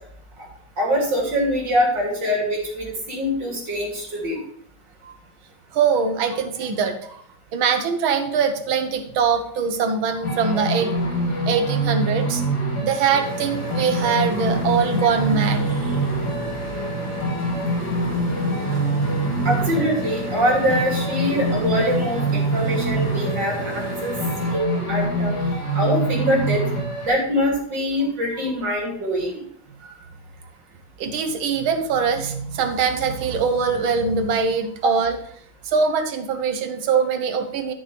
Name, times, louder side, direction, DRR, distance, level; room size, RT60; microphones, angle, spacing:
voice 1, 0.8-4.4 19.4-24.2 24.5-25.3 25.7-26.6 27.0-29.5 34.8-34.9, equal, 60° right, -2 dB, 3.5 m, -23 dB
voice 2, 5.7-7.2 7.5-10.9 11.5-12.4 12.8-16.0 19.1-19.2 29.8-29.9 31.0-35.2 35.6-37.7, right 6 dB, 90° right, 7 dB, 1.8 m, -22 dB
sound 1, 10.2-27.1, right 2 dB, 55° left, 3.9 m, -25 dB
sound 2, 13.1-24.6, equal, 10° left, 1.9 m, -32 dB
11.5 x 6.8 x 3.3 m, 0.64 s
omnidirectional pair, 2.1 m